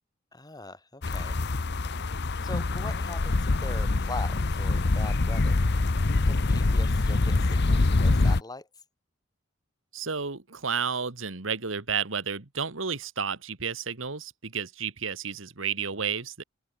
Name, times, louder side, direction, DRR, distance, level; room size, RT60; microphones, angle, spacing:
voice 1, 0.3-1.4 2.4-5.6 6.2-8.7, left 2 dB, 20° left, 3.2 m, -41 dB
sound 1, 1.0-8.4, left 2 dB, 60° left, 0.9 m, -25 dB
voice 2, 9.9-16.4, right 6 dB, 80° right, 1.8 m, -31 dB
open air
head